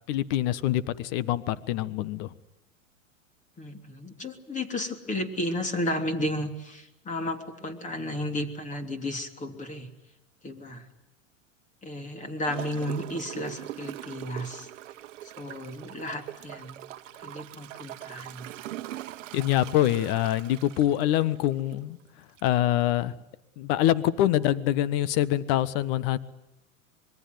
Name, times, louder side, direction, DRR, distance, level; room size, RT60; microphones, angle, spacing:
voice 1, 0.1-2.3 19.3-22.0 22.4-23.1 23.6-26.2, left 13 dB, 45° left, 16 dB, 1.4 m, -25 dB
voice 2, 3.6-9.9 10.4-10.8 11.8-14.7 15.4-16.8 17.2-18.5, left 1 dB, 20° left, 7 dB, 3.2 m, -33 dB
Gurgling / Toilet flush, 12.5-21.9 22.4-22.5, right 14 dB, 65° right, 1.1 m, -42 dB
25.5 x 22.5 x 9.6 m, 0.84 s
hypercardioid pair, 105°, 40 cm